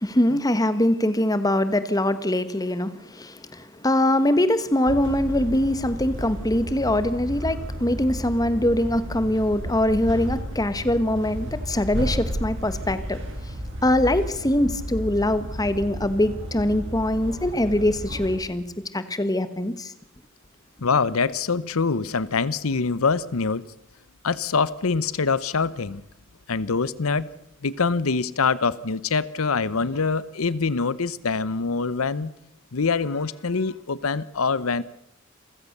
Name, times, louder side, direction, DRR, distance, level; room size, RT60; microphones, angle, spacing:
voice 1, 0.0-13.2 13.8-18.6 18.9-19.9, left 1 dB, 20° left, 1.4 m, -23 dB
sound 1, 4.9-18.4, equal, 60° right, 7.0 m, -33 dB
voice 2, 20.8-23.6 24.2-26.0 26.5-27.3 27.6-32.3 32.7-34.8, left 4 dB, 85° left, 0.8 m, -24 dB
28.0 x 15.5 x 6.7 m
head